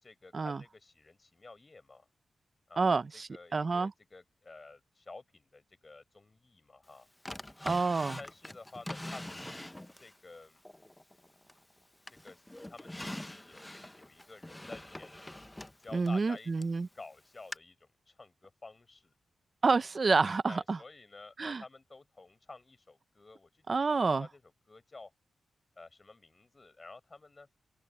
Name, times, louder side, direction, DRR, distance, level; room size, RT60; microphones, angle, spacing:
voice 1, 0.0-2.1 2.7-3.0 3.3-7.1 7.6-7.8 8.2-10.6 12.1-15.3 15.8-19.1 20.5-24.4 24.7-25.1 25.8-27.5, left 3 dB, 25° left, 5.3 m, -52 dB
voice 2, 2.8-3.9 7.6-8.2 15.9-16.9 19.6-20.8 21.4-21.6 23.7-24.3, right 4 dB, 35° right, 0.6 m, -28 dB
Drawer open or close, 7.2-10.2 10.6-11.7 12.1-16.8 17.5-17.6, left 1 dB, 10° left, 0.7 m, -44 dB
open air
wide cardioid pair, 160°, 0 cm